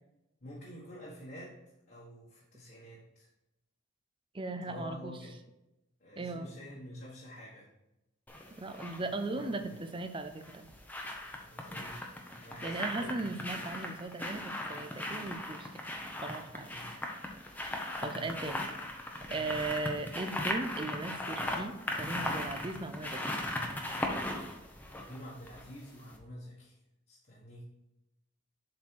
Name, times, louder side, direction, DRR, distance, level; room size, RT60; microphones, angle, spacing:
voice 1, 0.4-1.6 1.9-3.3 4.6-5.4 6.0-7.7 9.1-9.7 11.4-12.0 12.4-13.1 16.6-17.0 18.0-18.4 19.3-19.6 24.3-26.8 27.1-27.6, equal, 45° left, -6 dB, 1.4 m, -48 dB
voice 2, 4.3-5.1 6.2-6.5 8.6-10.7 12.6-15.7 16.2-16.8 18.0-18.7 19.3-23.3, right 3 dB, 25° right, 8 dB, 0.5 m, -38 dB
sound 1, 8.3-9.0 10.2-25.8 26.1-26.2, left 1 dB, 10° left, 0.8 m, -38 dB
7.4 x 4.3 x 4.6 m, 0.91 s
head